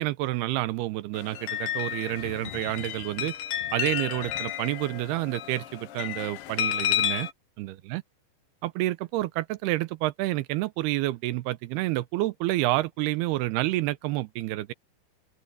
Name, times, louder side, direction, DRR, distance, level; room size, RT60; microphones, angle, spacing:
voice 1, 0.0-3.3 3.7-7.3 7.6-8.0 8.6-14.7, right 17 dB, 90° right, 2.8 m, -29 dB
sound 1, 1.2-7.3, left 10 dB, 70° left, 2.7 m, -31 dB
open air
omnidirectional pair, 4.6 m